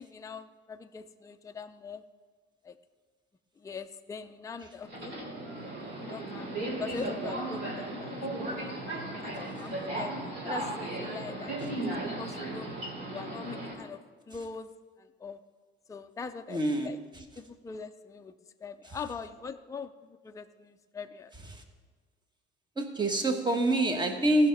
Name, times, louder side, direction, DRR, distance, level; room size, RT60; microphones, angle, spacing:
voice 1, 0.0-2.0 2.6-2.8 3.6-5.1 5.9-6.5 6.8-8.1 8.5-10.1 10.4-11.5 11.9-12.8 13.1-15.4 15.9-17.0 17.4-18.3 18.6-21.3, left 5 dB, 15° left, 7 dB, 0.4 m, -42 dB
Subway metro underground, 4.8-13.7, right 1 dB, 55° right, 2.9 m, -36 dB
voice 2, 16.5-16.9 21.5-21.6 22.8-24.5, right 1 dB, 20° right, 5 dB, 1.3 m, -26 dB
14.5 x 5.7 x 5.3 m, 1.4 s
cardioid pair, 110°, 21 cm